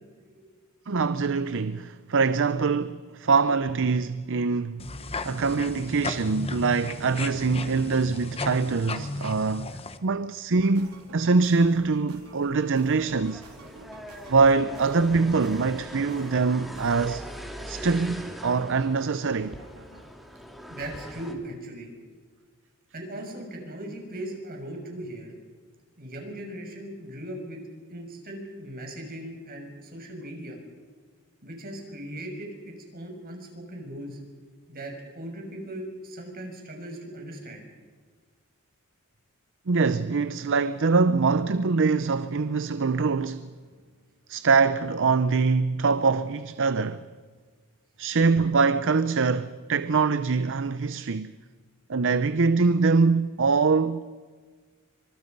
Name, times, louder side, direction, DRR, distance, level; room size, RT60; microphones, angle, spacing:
voice 1, 0.9-4.8 5.2-13.4 14.3-17.2 17.7-19.6 39.7-43.5 44.3-47.1 48.0-51.3 51.9-54.0, right 4 dB, 60° right, 0.7 m, -24 dB
sound 1, 4.8-10.0, left 2 dB, 25° left, 1.2 m, -35 dB
sound 2, 10.6-20.0, right 2 dB, 90° right, 4.0 m, -49 dB
sound 3, 13.0-21.3, equal, ahead, 2.7 m, -41 dB
voice 2, 20.7-21.9 22.9-25.3 26.0-27.6 27.9-30.6 31.4-34.2 34.7-37.7, right 1 dB, 45° right, 6.4 m, -38 dB
27.0 x 25.0 x 5.4 m
head